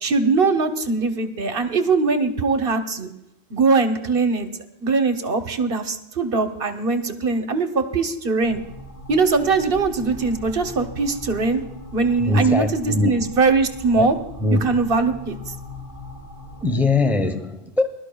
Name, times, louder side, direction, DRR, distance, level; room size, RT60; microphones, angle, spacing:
voice 1, 0.0-3.1 3.5-4.5 4.8-8.6 9.1-11.6 11.9-14.2 14.6-15.4, right 4 dB, 60° right, 1.2 m, -21 dB
sound 1, 8.4-16.6, left 1 dB, 45° left, 4.9 m, -39 dB
voice 2, 12.2-13.1 14.0-14.1 14.4-14.6 16.6-17.9, left 2 dB, ahead, 0.9 m, -21 dB
21.5 x 12.5 x 2.3 m
omnidirectional pair, 1.1 m